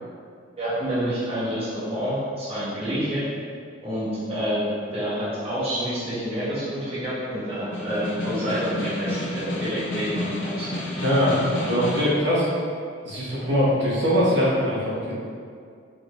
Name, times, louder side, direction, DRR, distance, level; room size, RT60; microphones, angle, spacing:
voice 1, 0.6-3.2 3.8-4.7 4.9-10.7, equal, 30° right, -11 dB, 1.0 m, -28 dB
Snare drum, 7.6-12.2, left 1 dB, 75° left, 0.6 m, -31 dB
voice 2, 11.0-12.5 13.0-15.1, equal, 65° right, -8 dB, 1.2 m, -22 dB
4.7 x 2.5 x 3.0 m, 2.2 s
head